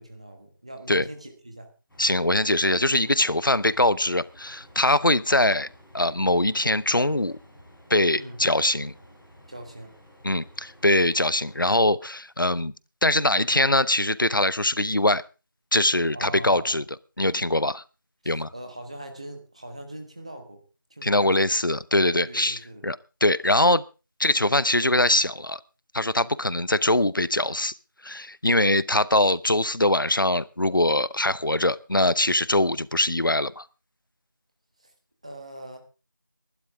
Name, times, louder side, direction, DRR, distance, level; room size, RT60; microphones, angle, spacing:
voice 1, 0.0-1.7 8.1-8.4 9.5-9.9 16.1-16.8 18.2-20.6 20.9-21.3 22.3-22.9 34.8-34.9 35.2-35.8, right 1 dB, 20° right, 1.4 m, -41 dB
sound 1, 1.9-11.8, equal, ahead, 1.1 m, -52 dB
voice 2, 2.0-5.7 5.9-7.4 7.9-8.9 10.2-12.7 13.0-15.2 15.7-16.8 17.2-17.8 18.3-18.5 21.0-23.8 24.2-25.6 25.9-27.7 28.0-33.6, left 1 dB, 80° left, 0.8 m, -22 dB
20.0 x 12.0 x 3.6 m
figure-of-eight pair, 175°, 11 cm